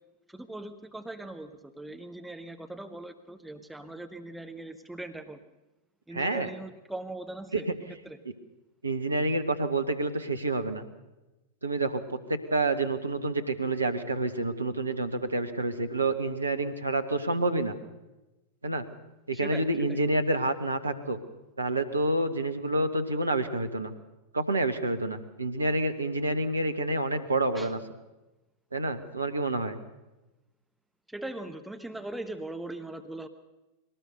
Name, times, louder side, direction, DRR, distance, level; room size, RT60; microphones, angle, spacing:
voice 1, 0.3-5.4 6.1-7.7 8.0-8.2 19.3-20.0 27.5-27.7 31.1-33.3, right 2 dB, 5° right, 7 dB, 1.2 m, -40 dB
voice 2, 6.1-6.5 7.5-7.6 8.8-10.8 11.6-17.8 18.6-18.8 19.3-21.2 21.6-23.9 24.3-27.8 28.7-29.8, right 2 dB, 80° right, 9 dB, 1.5 m, -28 dB
22.0 x 18.5 x 6.8 m, 1.0 s
figure-of-eight pair, 90°, 0 cm